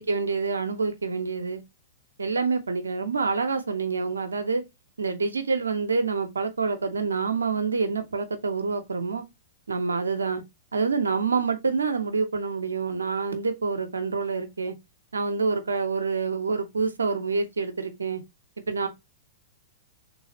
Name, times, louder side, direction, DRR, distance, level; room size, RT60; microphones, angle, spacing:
voice 1, 0.0-1.6 2.2-4.6 5.0-9.2 9.7-10.4 10.7-14.7 15.1-18.2 18.7-18.9, right 4 dB, 85° right, 0.9 m, -27 dB
3.4 x 3.2 x 4.2 m
hypercardioid pair, 115°, 0 cm